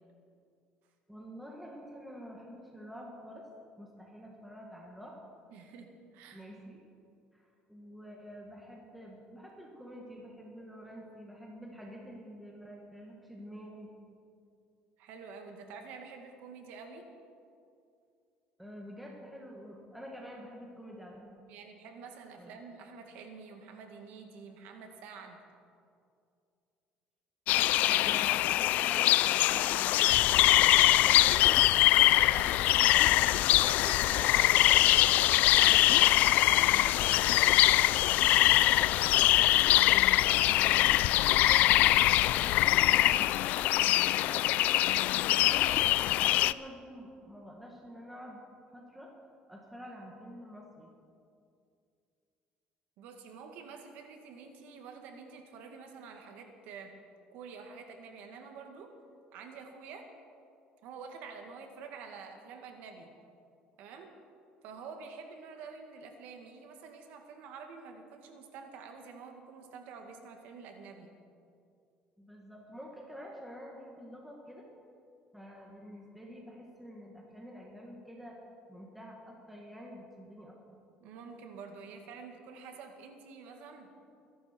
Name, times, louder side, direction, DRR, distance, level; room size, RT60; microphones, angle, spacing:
voice 1, 1.1-3.4 3.8-5.1 6.3-6.8 7.3-13.9 18.6-21.3 22.4-22.5 27.7-29.8 30.3-31.6 36.8-37.0 40.2-41.9 42.4-48.4 48.7-49.1 49.5-50.9 72.2-74.6 75.3-78.4 78.7-80.6, equal, ahead, -2 dB, 1.7 m, -48 dB
voice 2, 5.5-6.5 15.0-17.1 21.5-25.4 30.6-30.9 32.0-39.2 53.0-57.0 57.3-58.9 59.3-60.1 60.8-63.1 63.8-64.1 64.6-71.1 81.0-83.9, right 5 dB, 75° right, 4 dB, 2.1 m, -48 dB
sound 1, 27.5-46.5, left 15 dB, 60° left, 0.3 m, -23 dB
23.5 x 11.5 x 4.5 m, 2.4 s
cardioid pair, 155°, 3 cm